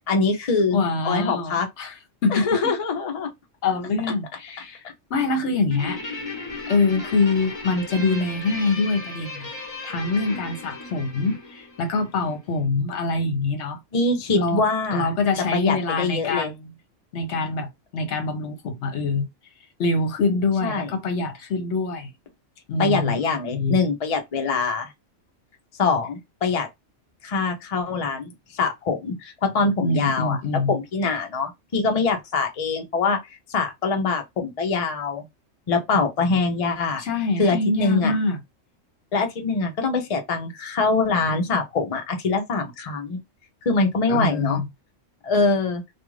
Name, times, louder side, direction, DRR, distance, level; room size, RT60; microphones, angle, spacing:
voice 1, 0.1-1.7 2.3-3.3 13.9-15.1 15.5-16.5 20.6-20.9 22.8-24.9 25.8-26.7 27.2-30.4 30.7-35.3 35.7-37.0 37.4-38.1 39.1-43.2 43.6-44.6 45.2-45.8, left 4 dB, 40° left, 0.5 m, -23 dB
voice 2, 0.7-1.9 2.2-2.7 3.6-4.8 5.1-6.2 6.7-9.5 9.8-13.8 14.4-14.6 14.9-16.7 17.1-19.3 19.8-22.1 22.7-23.2 23.5-23.8 29.8-30.8 36.3-36.4 37.0-38.4 44.1-44.7, left 3 dB, 65° left, 1.0 m, -24 dB
Guitar, 5.7-12.4, left 3 dB, 25° left, 0.9 m, -36 dB
2.4 x 2.4 x 3.0 m
omnidirectional pair, 1.3 m